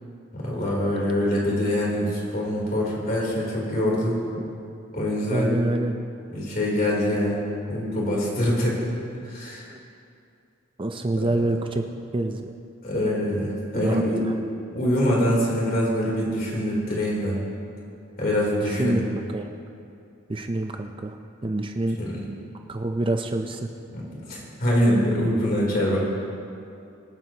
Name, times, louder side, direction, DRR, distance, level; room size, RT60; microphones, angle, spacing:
voice 1, 0.3-4.2 4.9-5.5 6.3-7.4 7.7-8.8 9.3-9.6 12.8-14.3 14.7-17.4 18.2-19.0 22.0-22.2 23.9-26.0, equal, 45° left, -4 dB, 3.4 m, -24 dB
voice 2, 5.3-5.9 9.7-9.8 10.8-11.8 12.1-12.5 13.7-14.0 18.6-19.0 19.3-19.5 20.3-21.2 21.4-22.0 22.7-23.6, right 2 dB, 25° right, 5 dB, 0.5 m, -26 dB
25.0 x 9.0 x 2.9 m, 2.5 s
head